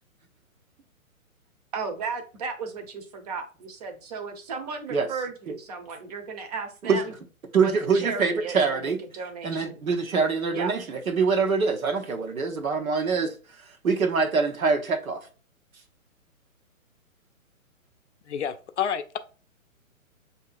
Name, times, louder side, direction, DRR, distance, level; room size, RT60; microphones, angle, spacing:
voice 1, 1.7-7.1 7.6-9.8 10.5-10.7, right 5 dB, 30° right, 0.7 m, -35 dB
voice 2, 7.5-9.0 9.4-15.2, right 5 dB, 75° right, 0.9 m, -24 dB
voice 3, 18.3-19.2, left 8 dB, 55° left, 0.5 m, -29 dB
6.4 x 2.8 x 2.4 m
figure-of-eight pair, 130°, 42 cm